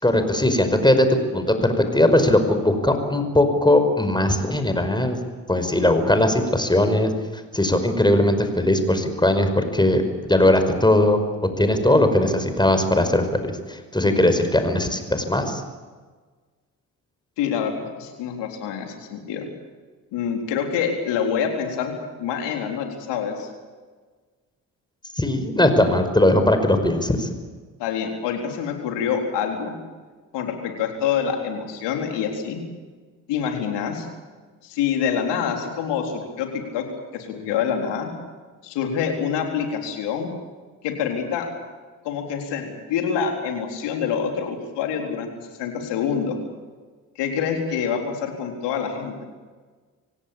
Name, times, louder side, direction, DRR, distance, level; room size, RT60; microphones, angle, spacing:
voice 1, 0.0-1.1 1.3-5.2 5.5-7.1 7.5-11.2 11.6-15.6 25.2-27.3, left 1 dB, 10° left, 8 dB, 5.3 m, -19 dB
voice 2, 17.4-19.5 20.1-21.9 22.2-23.5 27.8-29.8 30.3-32.6 33.3-34.1 34.6-36.8 37.1-38.1 38.6-40.3 40.8-41.5 42.0-45.3 45.6-46.4 47.2-49.1, left 7 dB, 80° left, 3 dB, 4.0 m, -26 dB
26.5 x 17.0 x 8.7 m, 1.4 s
hypercardioid pair, 50°, 41 cm